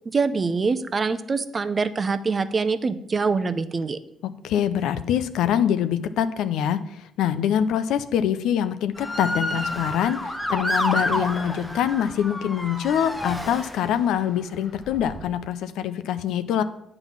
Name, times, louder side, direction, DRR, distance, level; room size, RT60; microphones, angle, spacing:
voice 1, 0.1-4.0, right 4 dB, 35° right, 13 dB, 0.6 m, -24 dB
voice 2, 4.4-16.6, left 9 dB, 85° left, 12 dB, 0.4 m, -24 dB
Motor vehicle (road) / Siren, 8.9-14.2 14.8-15.3, left 1 dB, 5° left, 0.9 m, -29 dB
9.0 x 3.9 x 7.1 m, 0.78 s
cardioid pair, 90°, 0 cm